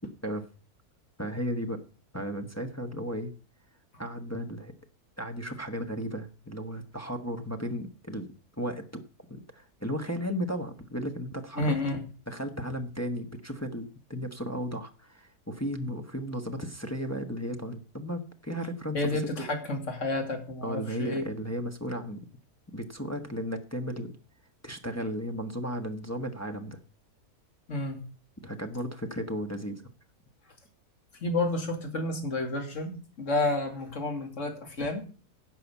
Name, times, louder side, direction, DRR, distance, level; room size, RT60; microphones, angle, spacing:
voice 1, 1.2-1.8 2.1-3.3 4.0-4.7 5.2-8.3 8.6-9.0 9.3-11.7 12.3-19.4 20.6-22.3 22.7-24.2 24.6-26.8 28.4-29.8, equal, 10° left, 4 dB, 0.8 m, -35 dB
voice 2, 11.6-12.0 18.9-21.3 27.7-28.0 31.2-35.0, left 2 dB, 50° left, 4 dB, 2.6 m, -30 dB
10.5 x 5.7 x 8.1 m, 0.37 s
omnidirectional pair, 1.6 m